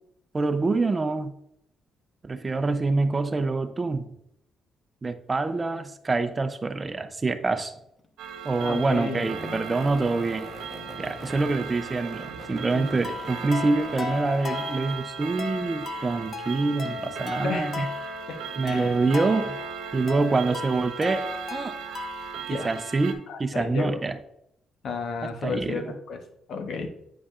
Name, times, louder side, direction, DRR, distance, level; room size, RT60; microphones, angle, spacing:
voice 1, 0.3-1.3 2.2-4.1 5.0-7.7 8.4-10.5 11.0-17.9 18.6-19.6 19.9-21.7 22.5-24.2 25.2-25.9, right 3 dB, 25° right, 10 dB, 0.6 m, -26 dB
sound 1, 7.7-8.1 9.1-14.4, left 2 dB, 30° left, 0.9 m, -43 dB
Clock, 8.2-23.1, right 8 dB, 85° right, 0.7 m, -38 dB
voice 2, 8.6-9.2 12.7-12.8 17.4-17.9 18.3-18.4 18.6-18.9 22.5-22.7 23.3-24.0 24.8-26.2 26.5-26.9, left 4 dB, 65° left, 5 dB, 1.0 m, -32 dB
sound 2, 13.0-22.4, left 5 dB, 50° left, 0.5 m, -36 dB
8.3 x 5.1 x 2.5 m, 0.76 s
cardioid pair, 90°, 0 cm